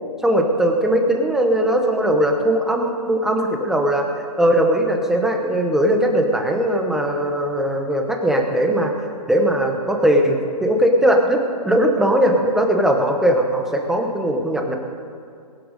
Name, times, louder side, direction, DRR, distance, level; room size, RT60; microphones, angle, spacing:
voice 1, 0.2-4.1 4.4-8.9 9.3-14.8, right 1 dB, ahead, 2 dB, 0.8 m, -19 dB
22.0 x 7.9 x 5.2 m, 2.3 s
hypercardioid pair, 145°, 21 cm